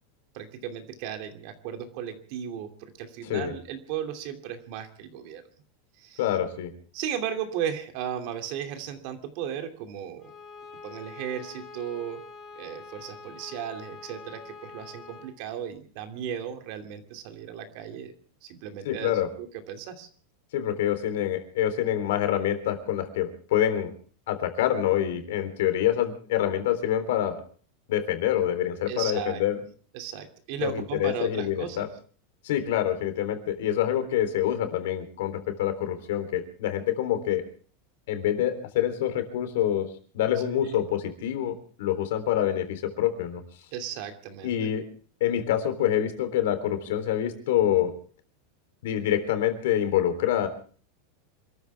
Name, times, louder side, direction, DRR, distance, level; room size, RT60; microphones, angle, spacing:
voice 1, 0.3-5.4 6.0-6.2 6.9-10.3 10.8-12.2 12.6-18.1 18.4-19.1 19.4-20.1 28.9-29.4 29.9-31.9 43.7-44.7, right 9 dB, 50° right, 6 dB, 2.8 m, -35 dB
voice 2, 6.2-6.7 18.8-19.3 20.5-23.9 24.3-27.4 27.9-29.6 30.6-31.9 32.4-37.4 38.1-39.9 40.1-43.4 44.4-44.8 45.2-47.9 48.8-50.5, left 11 dB, 70° left, 8 dB, 3.6 m, -26 dB
Bowed string instrument, 10.2-15.4, left 4 dB, 25° left, 2.9 m, -45 dB
27.5 x 14.0 x 3.5 m, 0.41 s
supercardioid pair, 160°, 0 cm